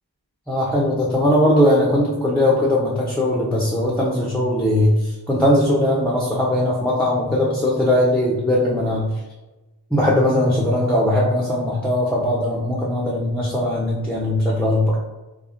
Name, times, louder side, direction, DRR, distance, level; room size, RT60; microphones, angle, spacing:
voice 1, 0.5-9.0 9.9-15.0, left 1 dB, 5° left, -4 dB, 0.4 m, -19 dB
3.4 x 2.0 x 2.4 m, 1.1 s
wide cardioid pair, 40°, 44 cm